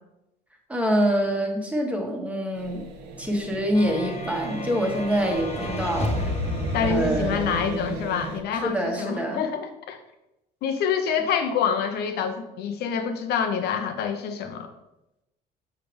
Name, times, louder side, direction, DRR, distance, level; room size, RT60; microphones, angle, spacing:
voice 1, 0.7-2.8 3.2-6.3 6.8-7.5 8.6-9.4, equal, 10° right, 1 dB, 1.4 m, -25 dB
sound 1, 2.5-8.4, right 4 dB, 90° right, 1.0 m, -35 dB
sound 2, 3.7-8.4, left 1 dB, 40° left, 1.3 m, -32 dB
voice 2, 6.7-10.0 10.6-14.7, left 7 dB, 75° left, 7 dB, 0.9 m, -27 dB
7.4 x 5.7 x 3.4 m, 0.92 s
cardioid pair, 110°, 17 cm